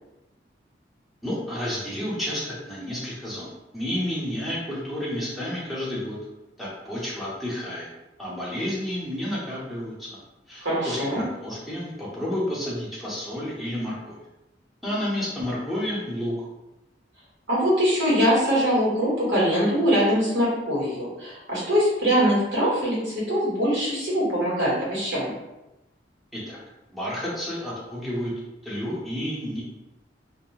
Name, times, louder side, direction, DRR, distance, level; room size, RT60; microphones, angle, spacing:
voice 1, 1.2-6.2 6.6-7.9 8.2-10.2 10.5-14.2 14.8-16.3 26.3-26.6 26.9-28.3 28.6-29.6, left 1 dB, ahead, -7 dB, 0.8 m, -31 dB
voice 2, 10.6-11.2 17.5-25.3, equal, 75° right, -6 dB, 1.3 m, -23 dB
2.4 x 2.1 x 3.1 m, 0.97 s
head